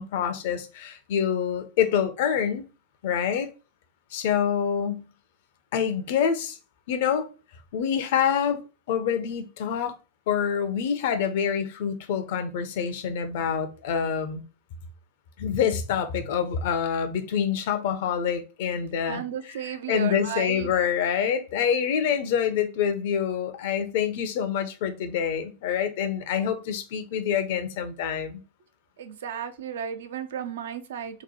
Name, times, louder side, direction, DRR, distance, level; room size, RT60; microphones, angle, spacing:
voice 1, 0.0-2.6 3.0-3.5 4.1-5.1 5.7-6.6 6.9-7.3 7.7-8.6 8.9-10.0 10.3-14.4 15.4-19.2 19.9-28.4, left 8 dB, 50° left, 0.5 m, -26 dB
voice 2, 19.0-20.7 29.0-31.2, right 8 dB, 60° right, 0.4 m, -34 dB
2.9 x 2.1 x 4.0 m
figure-of-eight pair, 90°, 0 cm